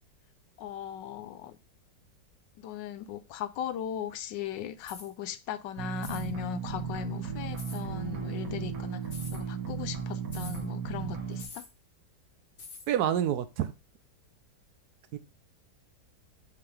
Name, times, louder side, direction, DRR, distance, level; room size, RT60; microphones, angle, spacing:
voice 1, 0.6-1.6 2.6-11.6, left 10 dB, 85° left, 1.3 m, -38 dB
sound 1, 4.8-5.1 6.0-6.3 7.6-7.8 9.0-9.4 10.3-10.6 11.4-11.7 12.6-12.9, left 4 dB, 35° left, 1.1 m, -45 dB
sound 2, 5.8-11.4, right 7 dB, 55° right, 1.6 m, -35 dB
voice 2, 12.9-13.7 15.1-15.2, right 10 dB, 70° right, 1.0 m, -27 dB
5.8 x 5.6 x 3.2 m
omnidirectional pair, 1.9 m